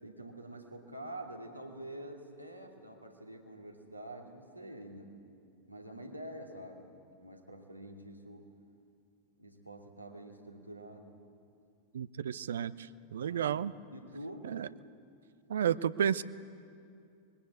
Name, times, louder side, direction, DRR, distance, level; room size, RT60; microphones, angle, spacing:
voice 1, 0.0-5.1 5.7-6.9 7.2-8.6 9.4-11.2 13.2-13.5 13.9-14.6, right 1 dB, 90° right, 1 dB, 2.6 m, -47 dB
voice 2, 11.9-13.7 14.4-14.7 15.5-16.2, right 8 dB, 65° right, 17 dB, 0.6 m, -32 dB
24.5 x 22.0 x 8.4 m, 2.5 s
figure-of-eight pair, 90°, 0 cm